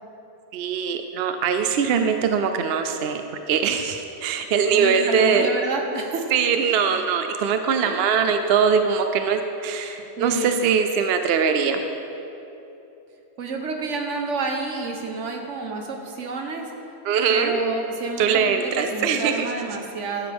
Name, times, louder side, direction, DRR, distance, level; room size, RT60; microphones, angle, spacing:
voice 1, 0.5-3.2 3.5-5.5 6.3-11.8 17.0-17.6 18.2-19.5, right 6 dB, 65° right, 7 dB, 0.7 m, -22 dB
voice 2, 4.7-6.3 6.9-7.0 7.8-8.0 10.2-10.6 13.4-16.7 17.3-20.3, right 3 dB, 80° right, 3 dB, 1.4 m, -29 dB
12.5 x 10.0 x 3.5 m, 3.0 s
omnidirectional pair, 1.2 m